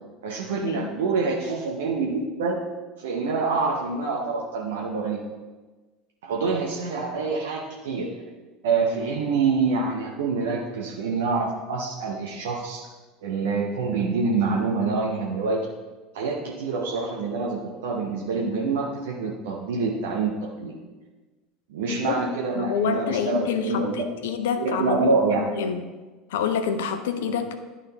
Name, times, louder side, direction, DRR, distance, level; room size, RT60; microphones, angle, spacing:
voice 1, 0.2-2.6 3.0-5.2 6.2-8.1 8.6-12.9 13.2-15.7 16.1-20.7 21.7-24.0 24.6-25.4 27.3-27.4, right 4 dB, 65° right, -2 dB, 0.8 m, -26 dB
voice 2, 22.5-25.8 26.3-27.5, left 7 dB, 65° left, 9 dB, 0.5 m, -27 dB
11.0 x 3.7 x 4.0 m, 1.2 s
figure-of-eight pair, 70°, 0 cm